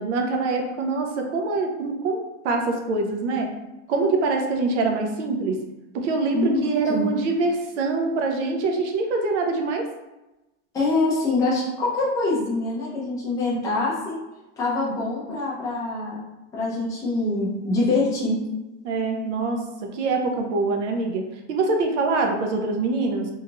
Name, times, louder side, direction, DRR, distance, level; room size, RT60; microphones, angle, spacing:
voice 1, 0.0-3.5 3.9-5.6 5.9-9.9 18.8-23.3, right 3 dB, 80° right, 3 dB, 0.7 m, -24 dB
voice 2, 6.3-7.1 10.7-14.2 14.6-16.2 16.5-18.5, left 2 dB, 10° left, -7 dB, 0.5 m, -24 dB
2.8 x 2.3 x 2.9 m, 1.0 s
supercardioid pair, 170°, 36 cm